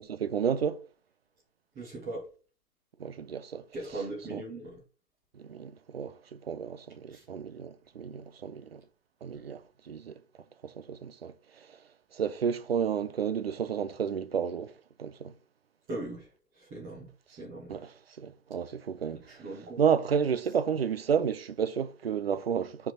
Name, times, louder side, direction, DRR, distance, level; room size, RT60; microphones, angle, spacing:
voice 1, 0.1-0.8 3.0-3.6 4.3-4.4 5.3-8.8 9.2-10.2 10.6-11.8 12.1-14.7 15.0-15.3 17.7-19.4 19.8-22.9, right 7 dB, 40° right, 0.5 m, -31 dB
voice 2, 1.7-2.3 3.7-4.8 7.1-7.2 15.9-16.3 16.5-17.1 17.4-17.8 19.1-19.8, right 2 dB, 15° right, 2.3 m, -39 dB
5.7 x 4.7 x 5.1 m
figure-of-eight pair, 135°, 49 cm